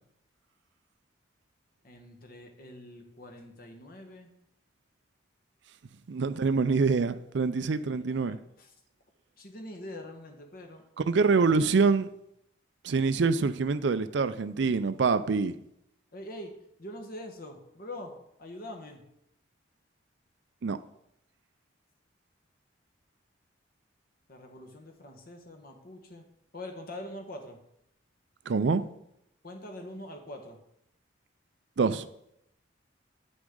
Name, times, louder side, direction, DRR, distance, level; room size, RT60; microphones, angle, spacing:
voice 1, 1.8-4.3 7.7-8.7 9.4-10.8 16.1-16.5 16.8-18.1 18.4-19.0 24.3-26.2 26.5-27.6 29.4-30.6, left 1 dB, 50° left, 1.4 m, -44 dB
voice 2, 6.1-8.4 11.1-12.1 12.8-15.5 20.6-20.8 28.5-28.8 31.8-32.1, right 4 dB, 65° right, 0.4 m, -25 dB
9.7 x 6.1 x 3.8 m
head